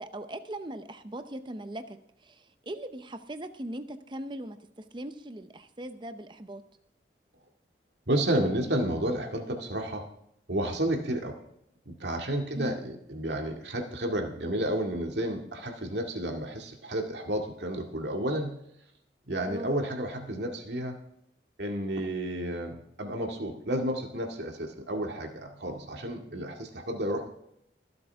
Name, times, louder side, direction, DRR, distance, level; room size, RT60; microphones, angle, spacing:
voice 1, 0.0-6.6 12.5-12.8 19.5-19.7, right 1 dB, 25° right, 9 dB, 0.7 m, -40 dB
voice 2, 8.1-10.1 10.5-11.4 11.9-18.6 19.3-20.9 21.6-27.3, right 1 dB, 70° right, 2 dB, 2.1 m, -31 dB
24.0 x 8.0 x 3.5 m, 0.75 s
head